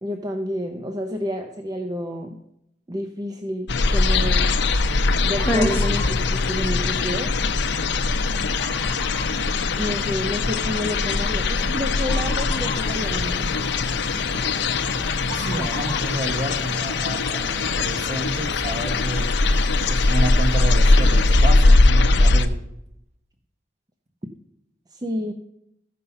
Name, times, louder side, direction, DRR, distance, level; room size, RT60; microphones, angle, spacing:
voice 1, 0.0-2.4 2.9-4.5 5.2-7.3 9.8-13.5 24.9-25.3, equal, 20° right, 4 dB, 0.6 m, -29 dB
sound 1, 3.7-22.5, left 3 dB, 65° left, 0.6 m, -21 dB
sound 2, 3.8-21.5, left 1 dB, 15° left, 1.3 m, -34 dB
voice 2, 15.3-19.4 19.9-22.6, right 1 dB, 35° right, 5 dB, 1.2 m, -30 dB
14.5 x 5.6 x 5.6 m, 0.81 s
head